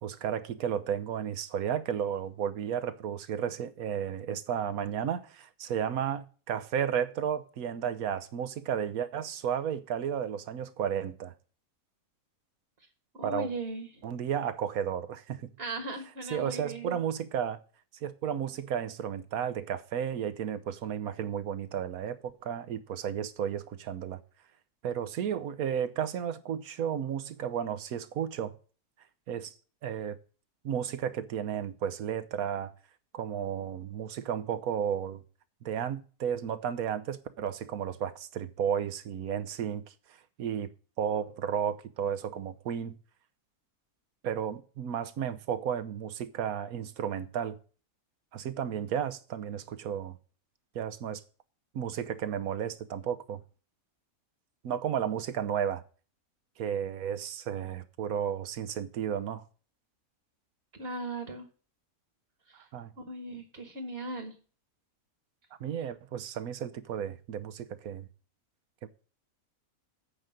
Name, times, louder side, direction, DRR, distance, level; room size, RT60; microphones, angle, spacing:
voice 1, 0.0-11.3 13.2-13.5 14.0-15.5 16.3-17.6 18.0-24.2 24.8-28.5 29.3-29.5 29.8-30.2 30.6-32.7 33.1-35.2 35.6-39.8 40.4-40.7 41.0-43.0 44.2-47.6 48.3-50.2 50.7-51.2 51.7-53.4 54.6-55.8 56.6-59.4 62.7-62.9 65.6-68.1 68.8-68.9, right 8 dB, 75° right, 1.3 m, -33 dB
voice 2, 13.1-14.0 15.6-17.0 60.7-61.5 62.5-62.7 63.0-64.3, right 2 dB, 45° right, 1.6 m, -38 dB
8.5 x 5.1 x 7.6 m
omnidirectional pair, 1.5 m